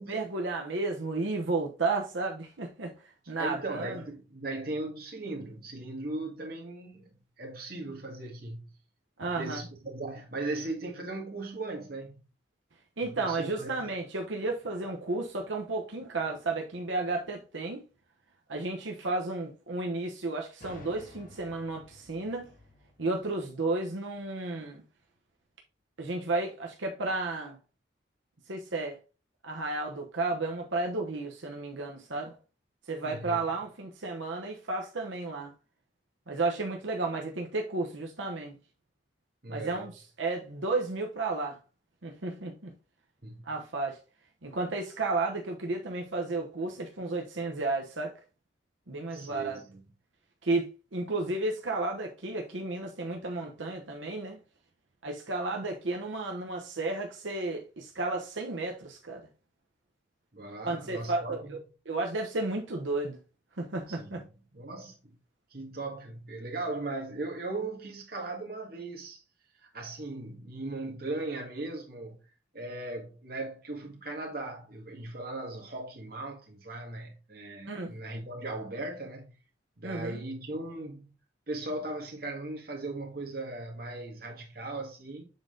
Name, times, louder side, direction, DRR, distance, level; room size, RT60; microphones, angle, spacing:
voice 1, 0.0-2.9 3.3-4.0 9.2-9.6 13.0-17.8 18.5-22.5 23.0-24.8 26.0-27.6 28.5-29.0 29.4-32.4 32.9-35.5 36.3-38.6 39.5-39.9 40.2-41.6 42.0-42.7 43.4-44.0 44.4-48.1 48.9-49.6 50.4-54.4 55.0-59.2 60.6-61.4 61.9-63.2 63.6-64.2 77.7-78.0 79.8-80.2, right 3 dB, 80° right, 1.0 m, -32 dB
voice 2, 3.4-7.1 7.4-8.8 9.3-12.2 13.1-13.7 33.0-33.4 39.4-39.9 43.2-43.5 49.1-49.8 60.3-61.6 63.9-64.2 64.5-65.2 65.5-69.2 69.7-72.2 72.5-79.4 79.8-81.1 81.5-85.2, right 2 dB, 50° right, 1.7 m, -38 dB
sound 1, 20.6-24.3, left 2 dB, 45° left, 1.6 m, -54 dB
7.2 x 3.9 x 3.7 m
head